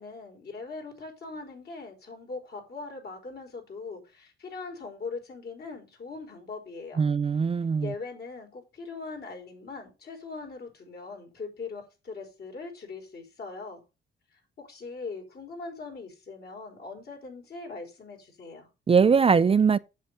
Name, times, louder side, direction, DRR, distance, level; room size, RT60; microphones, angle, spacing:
voice 1, 0.0-7.0 7.8-13.8 14.3-18.7, left 4 dB, 55° left, 4.8 m, -41 dB
voice 2, 7.0-7.9 18.9-19.8, right 6 dB, 30° right, 0.5 m, -21 dB
8.1 x 7.6 x 5.3 m
cardioid pair, 90°, 20 cm